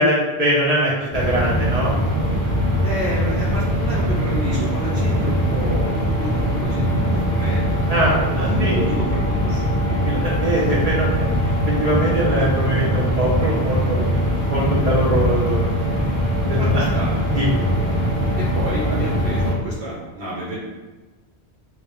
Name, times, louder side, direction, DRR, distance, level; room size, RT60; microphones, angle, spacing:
voice 1, 0.0-1.9 7.9-8.9 9.9-11.1 11.6-14.0 14.5-15.7 16.5-16.8 17.3-17.6, right 1 dB, 50° right, -5 dB, 0.5 m, -22 dB
sound 1, 1.1-19.5, equal, 20° right, 1.2 m, -21 dB
voice 2, 2.8-10.1 12.4-12.5 16.6-17.1 18.3-20.6, right 1 dB, 75° right, -8 dB, 0.9 m, -29 dB
2.3 x 2.0 x 2.9 m, 1.2 s
omnidirectional pair, 1.1 m